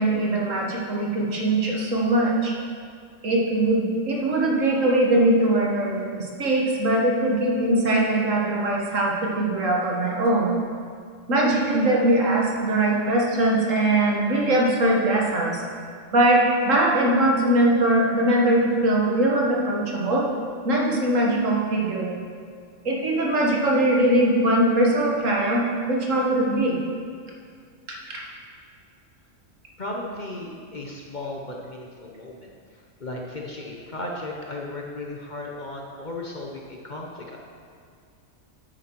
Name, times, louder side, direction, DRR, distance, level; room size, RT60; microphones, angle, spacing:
voice 1, 0.0-2.5 3.2-10.5 11.3-15.6 16.1-20.3 20.6-22.1 22.9-26.8 27.9-28.3, right 1 dB, 65° right, -2 dB, 1.8 m, -21 dB
voice 2, 29.8-37.4, left 2 dB, 40° left, -1 dB, 0.9 m, -35 dB
9.3 x 8.1 x 4.5 m, 2.2 s
omnidirectional pair, 1.4 m